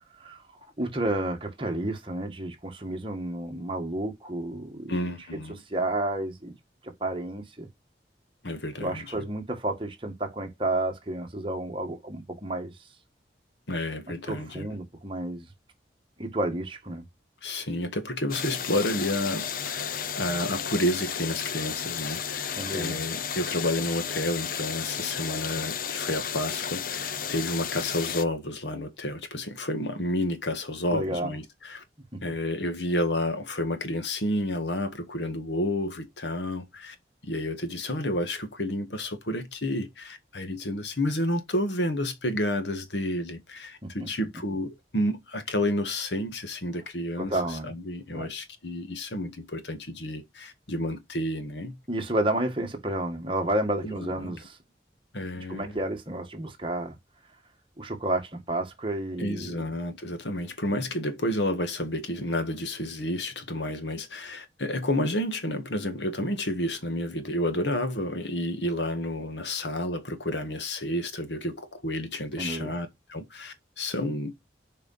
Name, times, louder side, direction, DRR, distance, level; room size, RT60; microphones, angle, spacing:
voice 1, 0.8-5.0 5.7-6.5 6.8-7.7 8.8-12.7 14.3-15.5 16.2-17.0 22.5-23.0 30.9-31.3 32.1-32.2 43.8-44.3 47.2-47.8 48.1-48.3 51.9-54.6 55.3-57.0 57.8-59.8 72.4-72.8, right 1 dB, 30° right, 1.8 m, -31 dB
voice 2, 4.9-5.6 8.4-9.1 13.7-14.7 17.4-31.8 32.2-36.9 37.2-51.8 53.8-54.3 55.1-55.8 59.2-74.3, left 1 dB, 85° left, 1.8 m, -30 dB
sound 1, 18.3-28.2, left 8 dB, 50° left, 0.7 m, -33 dB
6.9 x 4.8 x 5.7 m
head